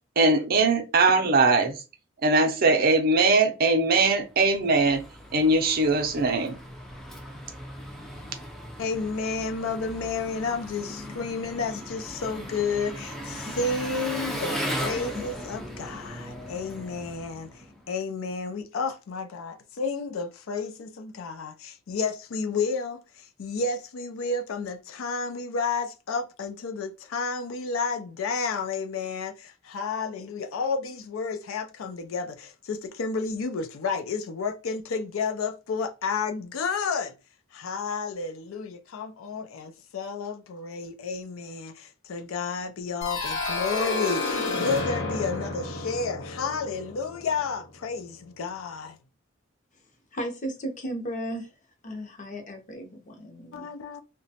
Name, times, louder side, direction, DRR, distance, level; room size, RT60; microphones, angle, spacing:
voice 1, 0.2-1.8 2.2-5.0 5.3-6.6, right 3 dB, 45° right, 0.5 m, -21 dB
Engine, 4.3-17.9, equal, ahead, 0.4 m, -37 dB
voice 2, 8.8-37.1 37.5-49.0 53.5-54.0, left 4 dB, 80° left, 0.4 m, -31 dB
sound 1, 43.0-47.7, left 3 dB, 65° left, 0.8 m, -30 dB
voice 3, 50.1-51.5 51.8-53.7, right 1 dB, 40° left, 0.7 m, -35 dB
2.9 x 2.2 x 2.7 m
head